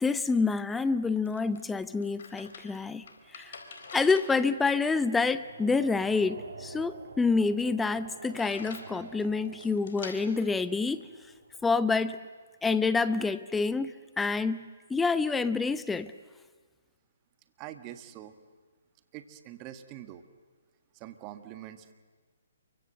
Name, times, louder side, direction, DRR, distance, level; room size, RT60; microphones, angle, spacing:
voice 1, 0.0-3.0 3.3-3.5 3.9-11.1 11.6-12.2 12.6-16.1, left 4 dB, 5° left, 0.7 m, -27 dB
sound 1, 0.8-11.7, left 4 dB, 60° left, 4.2 m, -50 dB
sound 2, 1.3-12.1, right 4 dB, 75° right, 3.1 m, -50 dB
voice 2, 17.6-18.3 19.1-20.2 20.9-21.9, right 12 dB, 30° right, 1.6 m, -44 dB
28.5 x 24.0 x 7.9 m
hypercardioid pair, 145°, 0 cm